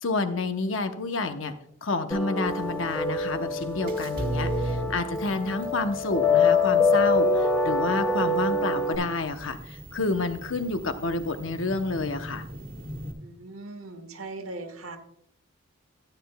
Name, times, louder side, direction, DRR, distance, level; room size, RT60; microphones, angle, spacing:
voice 1, 0.0-1.5 1.8-12.4, left 3 dB, 70° left, 9 dB, 0.8 m, -29 dB
sound 1, 2.1-9.0, left 3 dB, 10° left, 1.0 m, -25 dB
sound 2, 2.4-13.1, right 1 dB, 45° right, 1.3 m, -38 dB
voice 2, 13.2-15.0, right 2 dB, 85° right, 6 dB, 1.1 m, -39 dB
13.5 x 9.1 x 2.2 m, 0.70 s
head